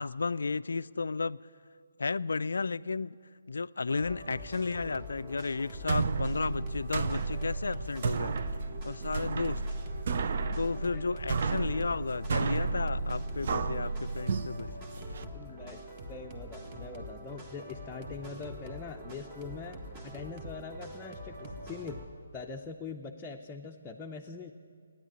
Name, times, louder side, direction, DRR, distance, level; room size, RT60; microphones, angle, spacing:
voice 1, 0.0-1.4 2.0-3.2 3.5-8.3 8.8-9.6 10.6-14.7 15.2-15.3, left 4 dB, 70° left, 17 dB, 0.3 m, -33 dB
sound 1, 3.9-22.1, equal, 25° right, 1.6 m, -45 dB
sound 2, 5.7-15.2, right 4 dB, 50° right, 0.6 m, -32 dB
voice 2, 15.3-22.0 22.3-24.5, left 4 dB, 15° left, -1 dB, 0.6 m, -43 dB
14.5 x 10.0 x 8.9 m, 2.3 s
figure-of-eight pair, 140°, 0 cm